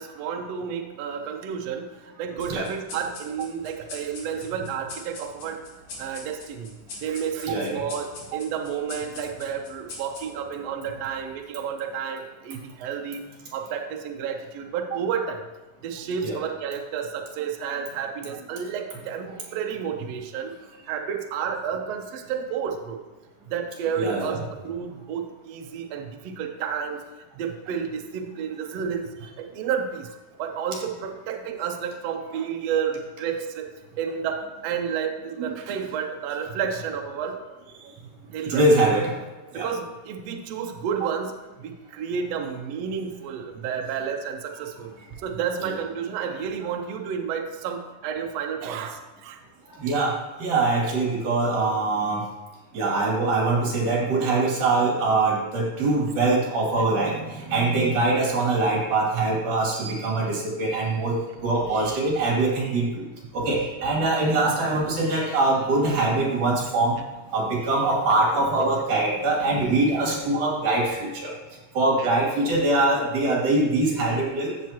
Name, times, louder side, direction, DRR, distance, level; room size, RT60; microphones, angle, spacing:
voice 1, 0.0-5.6 6.0-13.2 13.5-15.5 15.8-20.5 20.9-23.0 23.5-27.1 27.3-30.1 30.4-37.6 38.3-38.7 39.5-44.9 45.2-49.4 61.4-61.5 72.0-72.1, right 7 dB, 90° right, 4 dB, 1.4 m, -31 dB
sound 1, 2.4-11.3, left 2 dB, 75° left, 4.1 m, -44 dB
voice 2, 24.0-24.4 38.5-39.2 39.5-39.7 45.6-45.7 49.8-50.1 50.4-52.2 52.7-61.2 61.4-63.0 63.3-67.0 67.3-71.3 71.7-74.5, right 2 dB, 60° right, -3 dB, 4.0 m, -23 dB
14.5 x 7.2 x 3.0 m, 1.2 s
omnidirectional pair, 4.1 m